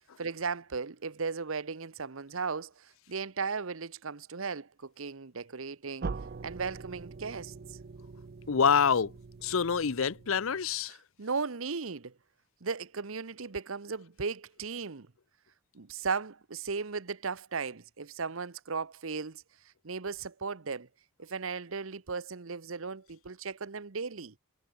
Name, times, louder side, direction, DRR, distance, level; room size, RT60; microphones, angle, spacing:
voice 1, 0.2-6.1 6.4-7.8 11.2-12.1 12.6-15.1 15.7-19.4 19.8-20.9 21.2-24.3, right 5 dB, 70° right, 0.9 m, -36 dB
sound 1, 6.0-10.8, right 4 dB, 45° right, 0.5 m, -43 dB
voice 2, 8.5-9.1 9.4-11.0, left 6 dB, 70° left, 0.6 m, -26 dB
head